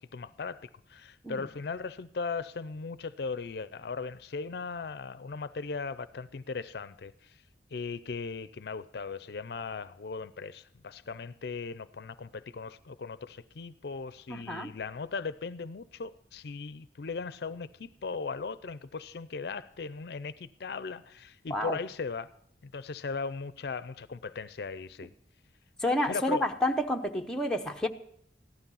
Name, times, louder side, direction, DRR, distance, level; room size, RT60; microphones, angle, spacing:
voice 1, 0.1-7.4 7.7-22.3 22.6-25.1 26.1-26.4, left 4 dB, 60° left, 0.5 m, -38 dB
voice 2, 14.3-14.7 21.5-21.8 25.8-27.9, left 1 dB, 5° left, 0.7 m, -29 dB
15.0 x 11.5 x 5.5 m
head